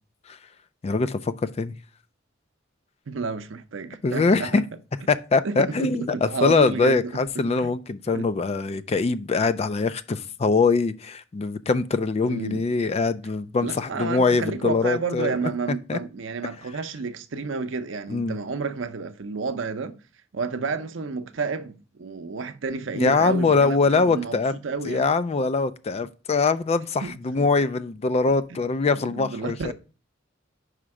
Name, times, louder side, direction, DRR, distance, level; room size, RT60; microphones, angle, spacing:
voice 1, 0.8-1.8 4.0-4.6 5.1-15.4 15.9-16.0 18.1-18.4 22.9-24.5 24.8-29.7, left 4 dB, 35° left, 0.4 m, -23 dB
voice 2, 3.1-4.5 5.4-7.0 7.6-7.7 8.1-8.3 12.3-12.6 13.6-20.0 20.3-24.4 24.6-25.0 27.0-27.5 28.9-29.7, right 4 dB, 80° right, 0.6 m, -31 dB
5.1 x 4.3 x 4.7 m
head